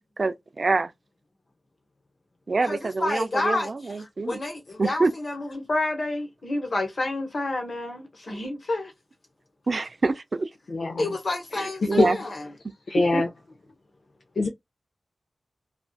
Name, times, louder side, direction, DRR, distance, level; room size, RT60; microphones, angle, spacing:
voice 1, 0.2-0.9 2.5-4.4 4.8-5.1 9.7-10.5 11.9-12.2 13.1-13.2, right 3 dB, 50° right, 0.3 m, -25 dB
voice 2, 2.7-3.7 4.0-8.9 11.0-12.4, left 2 dB, 50° left, 1.0 m, -29 dB
voice 3, 10.7-11.1 11.5-11.7 12.0-12.1 12.9-13.3 14.4-14.5, left 2 dB, 70° left, 0.4 m, -23 dB
2.4 x 2.3 x 2.2 m
wide cardioid pair, 100°, 0 cm